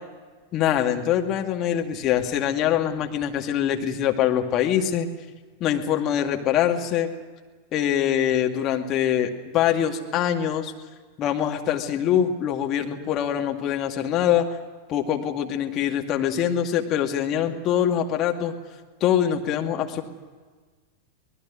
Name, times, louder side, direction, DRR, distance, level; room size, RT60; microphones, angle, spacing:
voice 1, 0.5-5.1 5.6-7.1 7.7-10.7 11.2-14.5 14.9-18.5 19.0-20.0, left 10 dB, 35° left, 2 dB, 2.3 m, -24 dB
25.5 x 19.5 x 6.4 m, 1.5 s
figure-of-eight pair, 90°, 0 cm